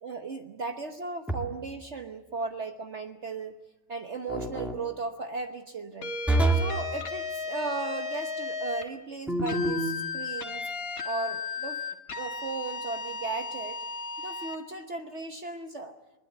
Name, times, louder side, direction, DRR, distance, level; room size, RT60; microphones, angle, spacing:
voice 1, 0.0-3.6 3.9-6.1 6.5-10.7 11.0-11.8 12.2-13.8 14.2-16.0, right 3 dB, 45° right, 5 dB, 1.3 m, -36 dB
sound 1, 1.3-1.8 4.3-4.8 6.3-6.8 9.3-10.0, right 2 dB, ahead, 2.1 m, -27 dB
sound 2, 6.0-8.9 9.5-14.6, left 4 dB, 60° left, 1.9 m, -35 dB
22.0 x 21.0 x 8.0 m, 1.0 s
omnidirectional pair, 1.7 m